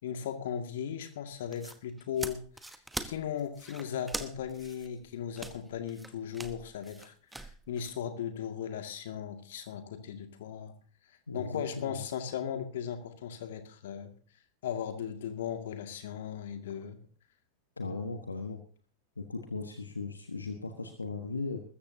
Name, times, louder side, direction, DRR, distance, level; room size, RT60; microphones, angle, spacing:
voice 1, 0.0-2.7 3.0-10.7 11.3-14.1 14.6-17.0, left 8 dB, 55° left, 7 dB, 2.1 m, -37 dB
sound 1, 1.5-7.9, right 2 dB, 5° right, 1.1 m, -43 dB
voice 2, 11.3-12.0 17.8-18.6 19.2-21.6, left 3 dB, 80° left, 6 dB, 1.3 m, -37 dB
21.0 x 14.0 x 2.8 m, 0.42 s
figure-of-eight pair, 90°, 0 cm